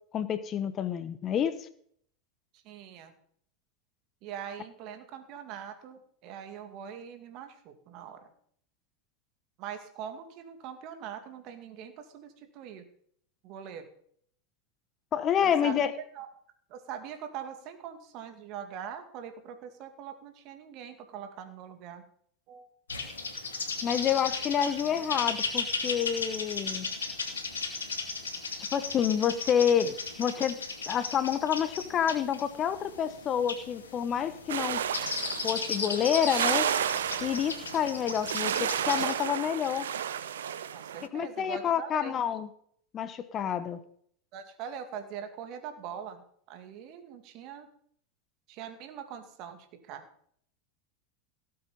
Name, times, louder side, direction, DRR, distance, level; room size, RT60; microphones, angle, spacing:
voice 1, 0.1-1.7 15.1-15.9 23.8-26.9 28.6-30.6 30.9-34.8 35.4-36.7 37.2-39.9 41.1-42.5 42.9-43.8, left 8 dB, 35° left, 13 dB, 1.1 m, -28 dB
voice 2, 2.5-3.1 4.2-8.3 9.6-12.8 13.4-13.9 15.4-15.7 16.1-16.3 16.7-22.0 22.5-22.7 24.6-25.1 40.7-42.2 44.3-46.2 46.5-47.7 48.5-50.1, right 8 dB, 50° right, 7 dB, 2.3 m, -42 dB
sound 1, 22.9-39.1, left 4 dB, 85° left, 2.7 m, -36 dB
sound 2, 34.5-41.1, right 9 dB, 75° right, 0.7 m, -32 dB
17.5 x 7.9 x 5.4 m, 0.63 s
hypercardioid pair, 90°, 0 cm